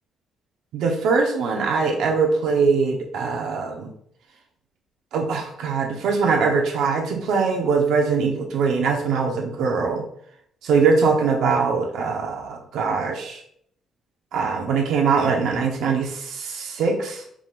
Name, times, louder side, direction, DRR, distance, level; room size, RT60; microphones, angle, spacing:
voice 1, 0.7-3.9 5.1-10.1 10.6-13.4 14.3-17.2, right 5 dB, 75° right, 1 dB, 0.9 m, -22 dB
4.8 x 3.7 x 2.5 m, 0.66 s
cardioid pair, 150°, 0 cm